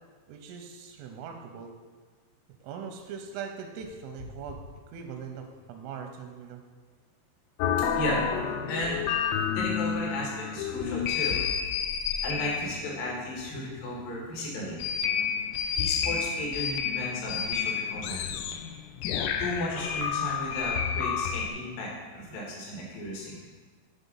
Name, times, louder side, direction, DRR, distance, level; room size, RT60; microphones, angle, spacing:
voice 1, 0.3-1.7 2.6-4.6 4.9-6.6 19.5-19.6, right 6 dB, 85° right, 4 dB, 3.1 m, -41 dB
sound 1, 7.6-21.5, left 7 dB, 85° left, 3.2 m, -30 dB
voice 2, 8.7-9.0 9.5-11.4 12.2-14.8 15.8-18.3 19.4-23.4, left 1 dB, 60° left, -3 dB, 2.8 m, -34 dB
10.0 x 4.0 x 5.4 m, 1.4 s
omnidirectional pair, 5.7 m